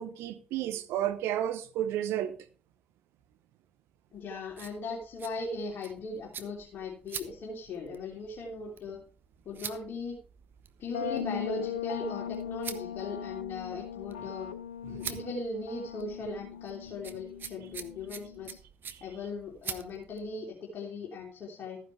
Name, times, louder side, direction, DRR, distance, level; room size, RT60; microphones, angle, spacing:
voice 1, 0.0-2.4 18.9-19.0, right 11 dB, 65° right, 0.8 m, -32 dB
voice 2, 4.1-9.0 9.4-10.2 10.8-14.5 14.9-18.6 19.0-21.8, left 3 dB, 55° left, 3.3 m, -38 dB
sound 1, 4.1-20.3, right 7 dB, 45° right, 1.2 m, -47 dB
sound 2, 10.9-18.6, left 9 dB, 80° left, 0.4 m, -39 dB
14.0 x 10.0 x 3.3 m
figure-of-eight pair, 45°, 5 cm